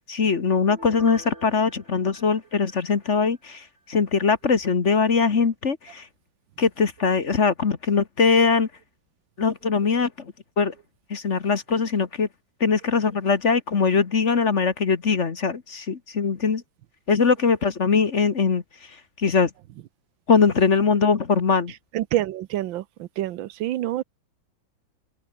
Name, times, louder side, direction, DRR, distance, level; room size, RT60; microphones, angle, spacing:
voice 1, 0.1-6.1 6.6-8.7 9.4-10.7 11.1-12.3 12.6-16.6 17.1-18.6 19.2-19.5 20.3-21.7, left 5 dB, 40° left, 1.6 m, -21 dB
Piano, 0.7-3.4 3.8-3.9, right 1 dB, 35° right, 7.9 m, -45 dB
voice 2, 21.9-24.0, right 14 dB, 80° right, 1.5 m, -27 dB
open air
omnidirectional pair, 2.1 m